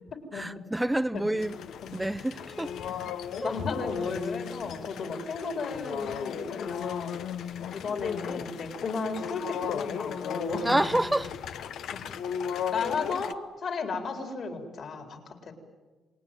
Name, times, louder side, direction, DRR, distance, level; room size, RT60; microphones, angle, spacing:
voice 1, 0.3-1.5 1.9-2.8 3.4-3.6 10.6-11.4, right 1 dB, 10° right, 0.7 m, -28 dB
sound 1, 1.4-13.3, left 8 dB, 75° left, 0.9 m, -36 dB
voice 2, 3.4-11.0 11.9-12.0 12.7-15.5, left 4 dB, 55° left, 4.2 m, -34 dB
28.0 x 20.0 x 9.1 m
cardioid pair, 90°, 0 cm